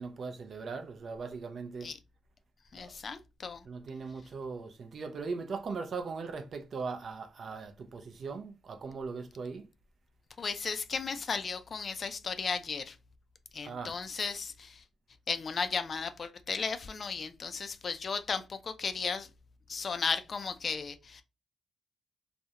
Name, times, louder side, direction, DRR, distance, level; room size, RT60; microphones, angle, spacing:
voice 1, 0.0-1.9 2.7-3.0 3.6-9.7 13.6-14.0, right 4 dB, 50° right, 0.4 m, -39 dB
voice 2, 2.7-3.6 10.4-13.0 13.5-14.8 15.3-19.3 19.7-21.2, left 5 dB, 45° left, 0.3 m, -35 dB
2.4 x 2.1 x 2.7 m
cardioid pair, 100°, 0 cm